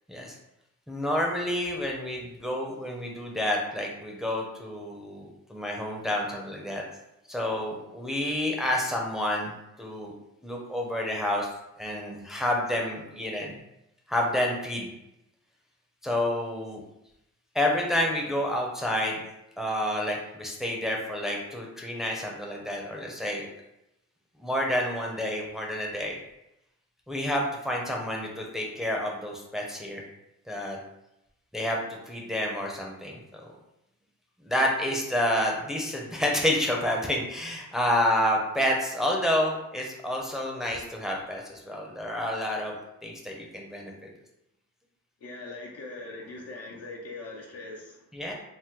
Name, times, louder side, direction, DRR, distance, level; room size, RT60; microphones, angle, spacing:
voice 1, 0.9-6.8 7.3-9.5 9.8-10.1 10.4-11.5 11.8-13.5 14.1-14.9 16.0-16.8 17.5-19.2 19.6-23.5 24.4-26.2 27.1-30.0 30.5-30.8 31.5-33.4 34.4-42.7 43.0-43.9 48.1-48.3, left 1 dB, ahead, -1 dB, 0.6 m, -29 dB
voice 2, 45.2-48.1, left 2 dB, 55° left, -1 dB, 0.6 m, -41 dB
2.9 x 2.1 x 3.6 m, 0.86 s
cardioid pair, 90°, 30 cm